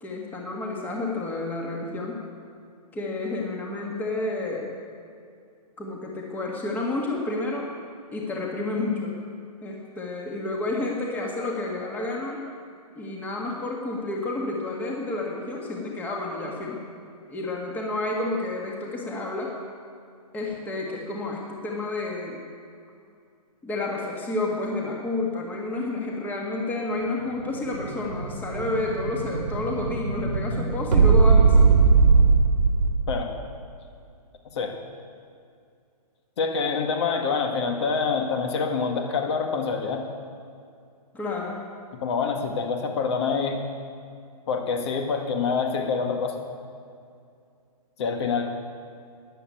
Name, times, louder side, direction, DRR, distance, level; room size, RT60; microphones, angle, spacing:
voice 1, 0.0-2.3 2.9-4.7 5.8-7.7 8.1-9.2 9.6-12.4 12.9-16.8 17.3-19.5 20.3-22.4 23.6-31.8 41.1-41.6, left 2 dB, 10° left, -1 dB, 1.8 m, -30 dB
Explosion, 27.2-33.3, right 4 dB, 90° right, 2.2 m, -20 dB
voice 2, 36.4-40.1 42.0-43.6 44.5-46.4 48.0-48.5, left 5 dB, 45° left, 4 dB, 1.8 m, -26 dB
14.0 x 11.0 x 8.5 m, 2.4 s
hypercardioid pair, 155°, 20 cm